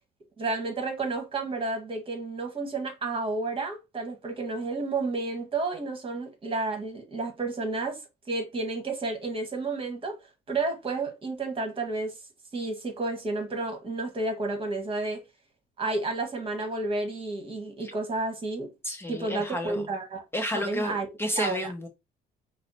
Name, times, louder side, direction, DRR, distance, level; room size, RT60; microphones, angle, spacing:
voice 1, 0.4-10.2 10.5-12.2 12.5-15.2 15.8-18.7 19.1-20.2 20.5-21.7, right 3 dB, 30° right, 1.4 m, -31 dB
voice 2, 18.8-19.8 20.3-21.9, left 1 dB, 15° left, 0.7 m, -31 dB
5.4 x 2.1 x 4.1 m
cardioid pair, 110°, 17 cm